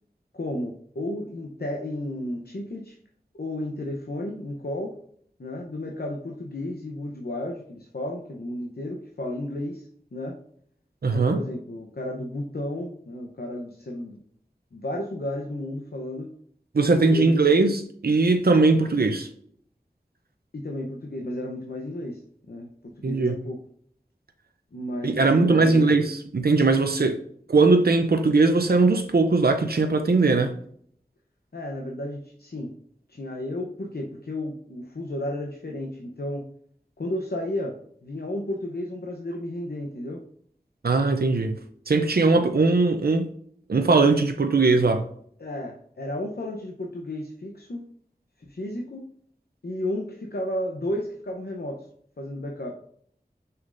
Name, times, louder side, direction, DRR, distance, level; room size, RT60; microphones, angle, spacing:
voice 1, 0.3-3.0 3.3-4.9 5.4-10.3 11.1-14.2 14.7-16.3 16.8-17.4 20.5-22.7 23.0-23.6 24.7-25.9 27.0-27.1 31.5-32.7 33.1-36.4 37.0-37.7 38.0-40.2 42.4-42.5 45.4-47.8 48.4-49.1 49.6-51.9 52.2-52.7, left 1 dB, 85° left, 0.8 m, -33 dB
voice 2, 11.0-11.4 16.7-19.3 23.0-23.4 25.0-27.1 27.5-30.5 40.8-41.5 41.9-43.3 43.7-45.1, right 3 dB, 75° right, 0.6 m, -20 dB
6.4 x 5.8 x 2.6 m
wide cardioid pair, 45°, 16 cm